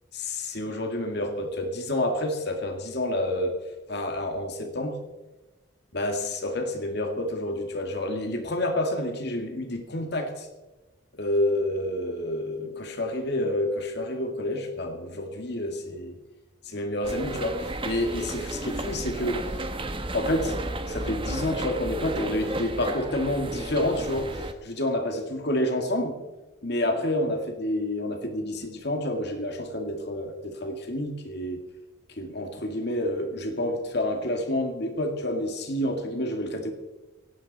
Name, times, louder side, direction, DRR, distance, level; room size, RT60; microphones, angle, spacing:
voice 1, 0.1-3.5 3.9-5.0 5.9-10.5 11.1-16.2 16.7-19.4 20.1-20.6 20.9-26.2 26.6-31.6 32.2-36.7, left 1 dB, 55° left, 4 dB, 2.2 m, -29 dB
sound 1, 17.0-24.5, right 1 dB, 25° right, 1.1 m, -33 dB
17.5 x 17.5 x 4.2 m, 1.1 s
head